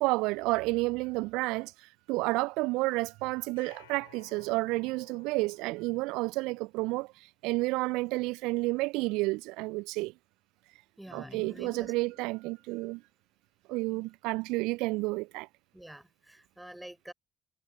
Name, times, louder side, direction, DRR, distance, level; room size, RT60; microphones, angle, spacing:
voice 1, 0.0-10.1 11.1-13.0 13.7-15.5, right 23 dB, 70° right, 0.4 m, -31 dB
sound 1, 3.6-6.6, left 17 dB, 75° left, 2.5 m, -59 dB
voice 2, 11.0-11.9 13.9-14.0 15.7-17.1, right 1 dB, 5° right, 4.1 m, -48 dB
sound 2, 11.1-12.7, left 3 dB, 25° left, 5.1 m, -53 dB
figure-of-eight pair, 45°, 0 cm